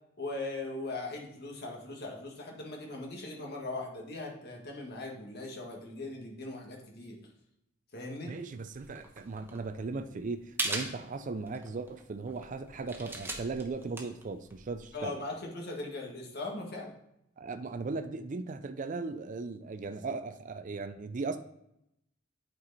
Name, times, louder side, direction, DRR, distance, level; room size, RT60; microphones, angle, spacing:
voice 1, 0.2-7.2 7.9-8.4 14.9-16.9, left 2 dB, 55° left, 0 dB, 1.7 m, -39 dB
voice 2, 8.3-15.1 17.4-21.4, right 3 dB, 40° right, 9 dB, 0.4 m, -37 dB
sound 1, 8.7-15.2, right 2 dB, 10° right, 1.0 m, -40 dB
8.7 x 4.6 x 4.1 m, 0.80 s
head